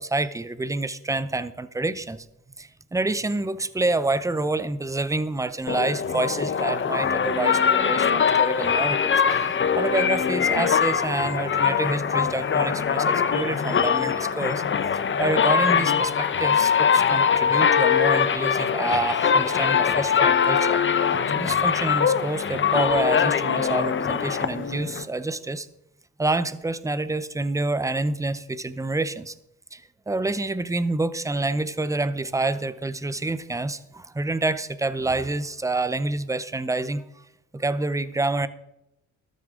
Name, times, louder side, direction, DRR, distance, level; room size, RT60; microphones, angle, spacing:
voice 1, 0.0-2.3 2.6-9.1 9.4-14.6 15.2-20.8 21.3-25.7 26.2-29.3 29.7-37.2 37.5-38.5, right 2 dB, 10° right, 15 dB, 0.7 m, -27 dB
sound 1, 5.7-25.0, left 7 dB, 35° left, 1.0 m, -22 dB
13.5 x 13.0 x 3.8 m, 0.86 s
cardioid pair, 95°, 32 cm